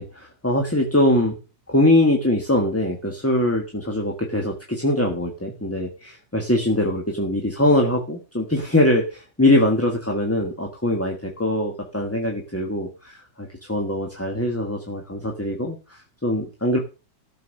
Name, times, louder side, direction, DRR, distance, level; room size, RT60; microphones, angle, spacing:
voice 1, 0.0-1.3 1.7-16.8, left 1 dB, 10° left, 1 dB, 1.4 m, -22 dB
13.5 x 7.3 x 6.5 m, 0.33 s
omnidirectional pair, 2.0 m